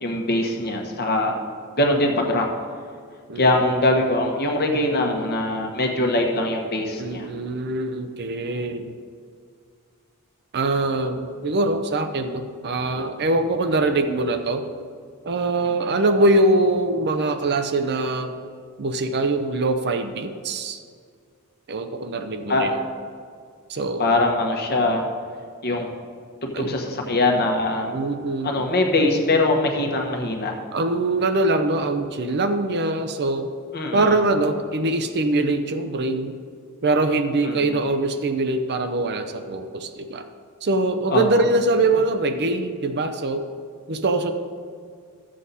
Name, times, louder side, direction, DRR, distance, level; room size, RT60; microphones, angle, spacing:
voice 1, 0.0-1.4 1.8-2.5 3.4-7.3 22.5-22.7 24.0-25.1 25.6-25.9 26.4-28.0 28.4-30.5 33.7-34.1 37.4-37.8 41.1-41.2, left 2 dB, 45° left, 2 dB, 1.3 m, -22 dB
voice 2, 7.0-9.0 10.5-14.7 15.2-18.3 18.8-20.8 21.7-22.8 23.7-24.1 26.5-26.7 27.9-28.7 30.7-33.5 33.9-36.4 36.8-40.2 40.6-43.5 43.9-44.3, right 2 dB, 50° right, 8 dB, 0.6 m, -23 dB
12.5 x 7.5 x 4.2 m, 2.1 s
head